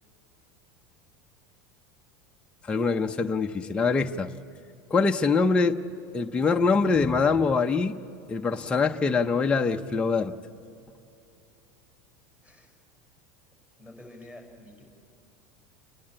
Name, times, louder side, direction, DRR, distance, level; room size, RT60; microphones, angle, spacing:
voice 1, 2.6-4.3 4.9-5.8 6.1-7.9 8.3-10.3, left 4 dB, 10° left, 0.6 m, -24 dB
voice 2, 12.4-12.7 13.8-14.8, left 1 dB, 10° right, 5.2 m, -48 dB
29.5 x 10.5 x 8.7 m
supercardioid pair, 145°, 9 cm